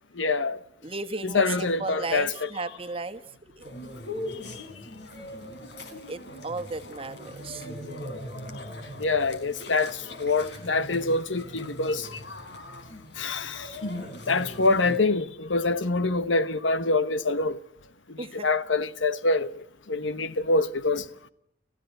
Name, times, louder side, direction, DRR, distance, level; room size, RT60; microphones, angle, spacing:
voice 1, 0.2-0.6 1.2-2.5 9.0-12.2 13.2-17.6 18.1-19.6 19.9-21.0, left 3 dB, 90° left, 1.2 m, -25 dB
voice 2, 0.8-3.7 6.1-7.7 18.2-18.5, right 3 dB, 30° right, 1.4 m, -35 dB
sound 1, 3.6-15.0, left 1 dB, 70° left, 4.2 m, -40 dB
30.0 x 15.5 x 9.2 m
head